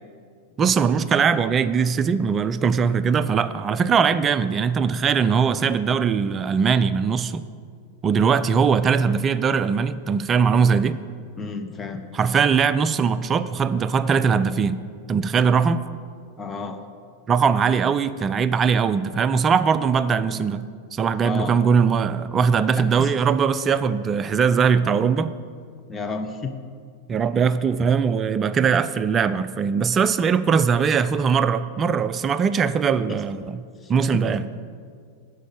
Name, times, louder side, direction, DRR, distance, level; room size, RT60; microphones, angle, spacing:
voice 1, 0.6-7.5 8.0-11.0 12.1-14.8 15.1-15.8 17.3-20.6 20.9-25.4 27.1-33.6 33.9-34.4, right 6 dB, 25° right, 15 dB, 0.4 m, -20 dB
voice 2, 11.4-12.1 16.4-16.8 21.2-21.6 23.0-23.1 25.9-26.5 33.1-33.2 33.8-34.3, left 4 dB, 15° left, 4 dB, 0.8 m, -31 dB
13.0 x 5.0 x 6.7 m, 2.1 s
figure-of-eight pair, 90°, 0 cm